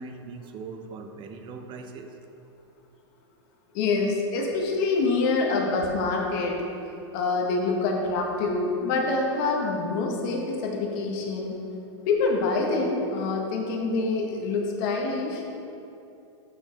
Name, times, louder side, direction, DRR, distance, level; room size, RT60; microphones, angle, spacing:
voice 1, 0.0-2.1, right 4 dB, 30° right, 5 dB, 0.7 m, -40 dB
voice 2, 3.7-6.6 7.1-11.6 12.1-15.4, left 3 dB, 50° left, 0 dB, 1.2 m, -26 dB
6.2 x 6.2 x 3.9 m, 2.7 s
hypercardioid pair, 125°, 15 cm